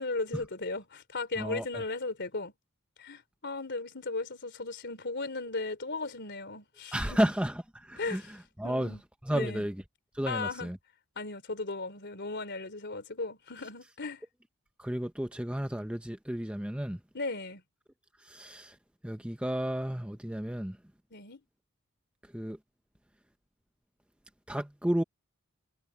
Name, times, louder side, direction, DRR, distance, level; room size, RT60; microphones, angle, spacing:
voice 1, 0.0-2.5 3.0-7.2 8.0-8.3 8.6-9.0 9.3-9.6 10.3-10.7 11.1-14.2 17.1-17.6 21.1-21.4, left 3 dB, 50° left, 3.5 m, -36 dB
voice 2, 1.4-1.8 6.9-9.0 9.2-9.8 10.1-10.8 14.8-17.0 18.2-18.8 19.0-20.8 22.3-22.6 24.5-25.0, equal, 5° right, 0.8 m, -32 dB
head